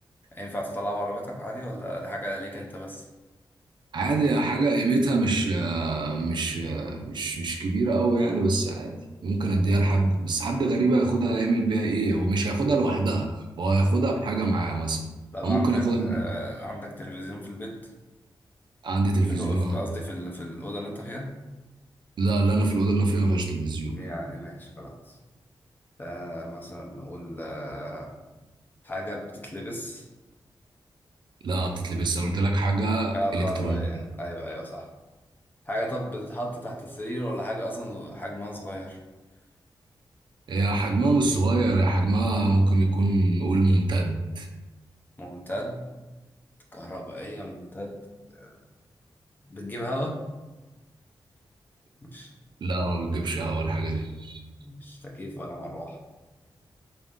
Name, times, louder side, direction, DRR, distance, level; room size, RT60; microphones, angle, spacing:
voice 1, 0.3-3.0 15.3-17.9 19.3-21.3 23.9-25.2 26.0-28.1 28.8-30.1 33.1-34.9 35.7-39.0 45.2-45.8 46.7-48.0 48.3-48.5 49.5-50.2 52.0-52.3 54.6-56.0, equal, 20° left, 0 dB, 0.6 m, -35 dB
voice 2, 3.9-15.0 15.4-16.2 18.8-19.8 22.2-24.0 31.4-34.1 40.5-44.5 52.6-54.4, right 2 dB, 65° right, 2 dB, 0.5 m, -24 dB
4.0 x 2.6 x 3.5 m, 1.1 s
wide cardioid pair, 170°, 8 cm